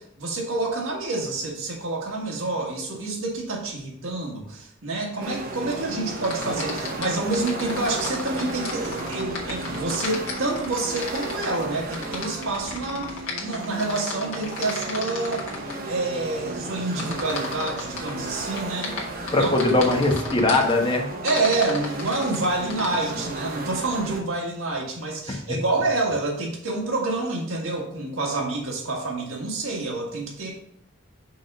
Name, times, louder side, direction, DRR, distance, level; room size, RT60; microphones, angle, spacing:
voice 1, 0.0-15.4 15.9-18.9 19.3-19.5 21.2-30.5, right 2 dB, 70° right, -2 dB, 1.8 m, -28 dB
sound 1, 5.2-24.2, right 2 dB, 45° right, 0.9 m, -34 dB
sound 2, 6.2-15.7 17.0-18.1 18.5-20.7 21.3-22.9, left 4 dB, 80° left, 1.5 m, -34 dB
voice 2, 19.3-21.1, left 2 dB, 25° left, 1 dB, 1.0 m, -20 dB
5.7 x 3.7 x 5.4 m, 0.69 s
head